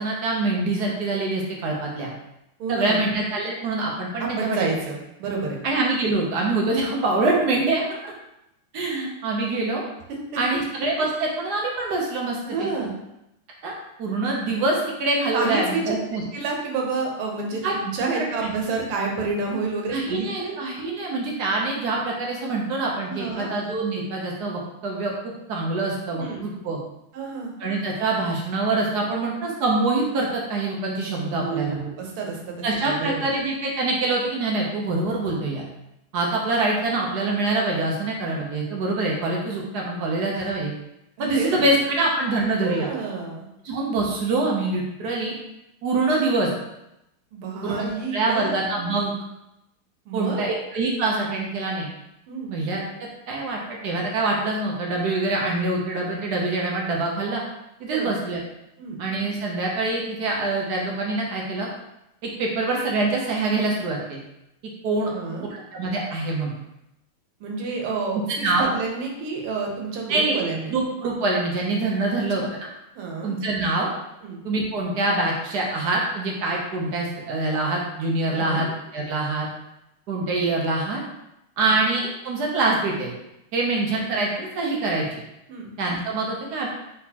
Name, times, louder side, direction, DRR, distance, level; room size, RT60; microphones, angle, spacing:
voice 1, 0.0-2.1 2.7-4.6 5.6-8.1 8.7-9.8 10.4-12.7 13.6-13.7 14.0-16.2 17.6-17.7 18.2-18.3 19.9-25.1 25.5-26.8 27.6-31.8 32.6-35.7 36.1-40.7 41.2-42.9 43.6-45.3 45.8-46.5 47.6-49.1 50.1-51.9 52.5-52.8 53.3-57.4 57.8-58.4 59.0-61.7 62.2-64.2 64.8-65.1 65.5-66.5 68.4-68.7 70.1-70.4 70.7-72.7 73.2-73.9 74.4-78.7 78.9-79.5 80.1-81.0 81.6-83.1 83.5-85.1 85.8-86.7, right 2 dB, 70° right, -2 dB, 1.0 m, -25 dB
voice 2, 2.6-3.0 4.2-5.6 10.1-10.6 12.5-12.9 15.3-16.0 16.3-20.6 23.1-23.6 26.1-26.5 27.1-27.5 31.2-32.6 32.8-33.3 40.3-40.5 41.2-41.7 42.6-43.5 47.3-48.6 50.1-50.6 52.3-52.5 57.9-58.1 58.8-59.0 65.1-65.5 67.4-70.8 72.4-72.5 73.0-73.3 74.2-74.4 78.3-78.7 81.6-81.8 85.5-85.7, right 4 dB, 85° right, 0 dB, 1.7 m, -29 dB
4.1 x 4.0 x 2.8 m, 0.87 s
omnidirectional pair, 2.4 m